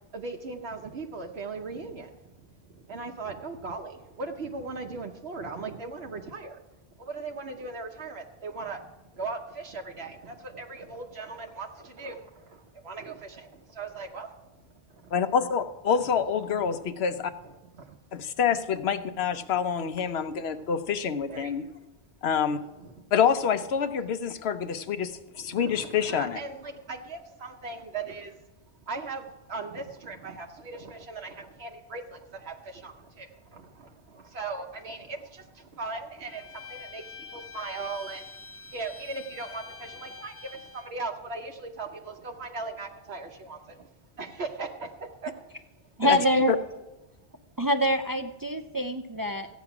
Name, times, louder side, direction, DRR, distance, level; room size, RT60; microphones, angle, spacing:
voice 1, 0.1-6.6 7.0-8.9 9.1-14.3 14.9-15.1 16.0-16.1 17.4-17.5 17.8-18.0 20.1-20.6 21.3-21.7 22.8-22.9 25.3-28.4 28.9-38.3 38.7-43.9 44.2-45.5 46.1-46.4, right 3 dB, 70° right, 3 dB, 1.1 m, -39 dB
voice 2, 15.1-17.3 18.1-21.6 22.2-22.6 23.1-26.4 46.0-46.2 46.5-46.6, left 7 dB, 70° left, 10 dB, 1.0 m, -27 dB
Bowed string instrument, 36.3-40.9, left 4 dB, 15° left, 0.5 m, -45 dB
voice 3, 46.0-46.5 47.6-49.5, equal, 35° right, 7 dB, 0.3 m, -25 dB
14.5 x 9.3 x 5.9 m, 1.0 s
omnidirectional pair, 1.1 m